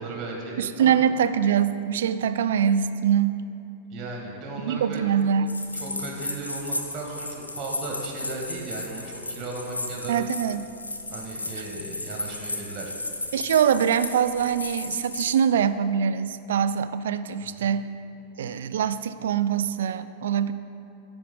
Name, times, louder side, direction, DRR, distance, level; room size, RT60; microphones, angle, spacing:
voice 1, 0.0-0.9 3.9-5.0 5.7-10.2 11.1-12.9 17.4-17.7, right 3 dB, 30° right, 0 dB, 1.8 m, -36 dB
voice 2, 0.6-3.4 4.6-5.6 10.1-10.7 13.3-17.9 18.4-20.5, right 8 dB, 60° right, 13 dB, 0.3 m, -23 dB
sound 1, 5.5-15.3, left 2 dB, 80° left, 0.7 m, -35 dB
14.5 x 5.1 x 3.7 m, 2.6 s
figure-of-eight pair, 90°, 0 cm